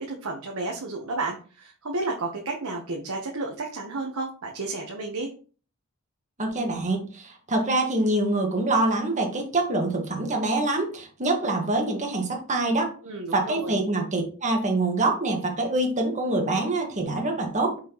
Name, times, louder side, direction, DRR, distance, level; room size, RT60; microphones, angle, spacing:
voice 1, 0.0-5.3 13.0-13.8, right 3 dB, 75° right, 1 dB, 1.1 m, -32 dB
voice 2, 6.4-12.9 13.3-17.8, right 2 dB, 35° right, 1 dB, 1.7 m, -25 dB
6.0 x 5.9 x 3.0 m, 0.38 s
head